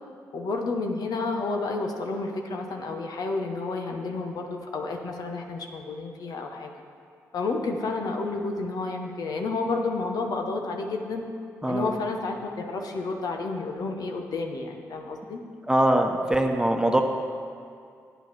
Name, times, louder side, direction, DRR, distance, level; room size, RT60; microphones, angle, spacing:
voice 1, 0.3-6.7 7.3-11.2 11.7-15.4, left 3 dB, 65° left, 3 dB, 1.1 m, -30 dB
voice 2, 15.7-17.0, right 1 dB, 10° right, 4 dB, 1.2 m, -22 dB
9.1 x 8.2 x 6.0 m, 2.2 s
hypercardioid pair, 40°, 7 cm